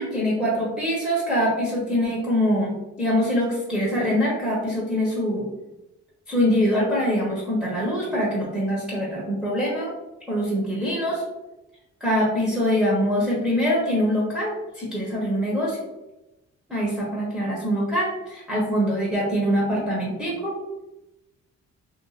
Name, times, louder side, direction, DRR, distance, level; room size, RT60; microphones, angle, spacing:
voice 1, 0.0-5.5 6.3-9.9 10.3-11.2 12.0-15.9 16.7-20.6, equal, ahead, -6 dB, 1.1 m, -24 dB
2.7 x 2.4 x 4.0 m, 0.96 s
cardioid pair, 90°, 30 cm